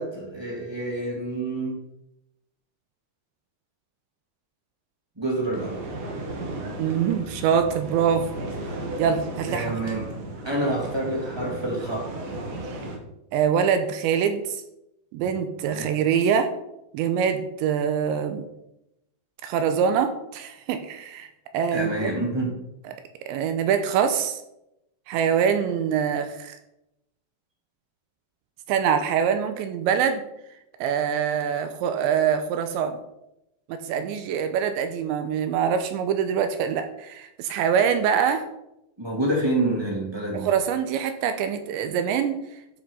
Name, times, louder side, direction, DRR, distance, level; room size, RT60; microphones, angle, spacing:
voice 1, 0.0-1.8 5.1-5.8 9.5-10.1 10.4-12.1 15.2-15.3 15.7-15.9 21.7-22.6 39.0-40.5, right 1 dB, 10° right, -2 dB, 1.7 m, -27 dB
sound 1, 5.5-13.0, right 2 dB, 55° right, 3.1 m, -35 dB
voice 2, 6.8-8.3 9.0-9.7 13.3-14.6 15.1-16.5 16.9-18.4 19.4-21.3 21.5-22.1 22.9-23.0 23.3-24.4 25.1-26.5 28.7-30.2 30.8-33.0 33.7-38.4 40.3-42.4, right 7 dB, 80° right, 8 dB, 2.9 m, -24 dB
12.5 x 5.8 x 5.6 m, 0.85 s
omnidirectional pair, 5.5 m